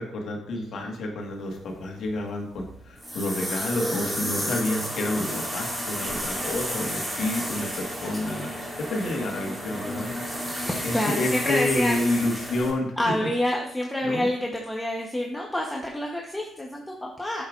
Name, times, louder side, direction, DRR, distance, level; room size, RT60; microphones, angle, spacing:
voice 1, 0.0-8.5 8.9-10.1 10.8-12.9 13.2-13.3 14.0-14.3, left 2 dB, 65° left, 1 dB, 1.5 m, -29 dB
sound 1, 1.5-12.7, equal, 15° right, 1.9 m, -32 dB
voice 2, 10.5-12.0 13.0-17.4, left 1 dB, 10° left, -1 dB, 0.9 m, -28 dB
8.5 x 6.6 x 2.5 m, 0.77 s
cardioid pair, 90°, 0 cm